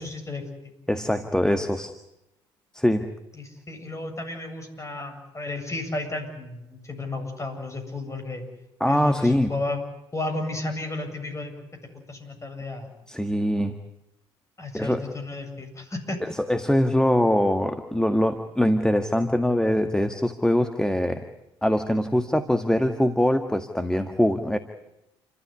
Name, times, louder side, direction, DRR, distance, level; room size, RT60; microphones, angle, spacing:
voice 1, 0.0-0.7 3.4-8.4 8.9-9.8 10.1-12.9 14.6-16.2, left 2 dB, 25° left, 5 dB, 7.8 m, -33 dB
voice 2, 0.9-1.9 2.7-3.1 8.8-9.5 13.1-13.8 14.7-15.0 16.2-21.2 21.6-24.6, left 1 dB, 5° left, 7 dB, 1.8 m, -23 dB
29.0 x 13.5 x 9.6 m, 0.90 s
hypercardioid pair, 60°, 12 cm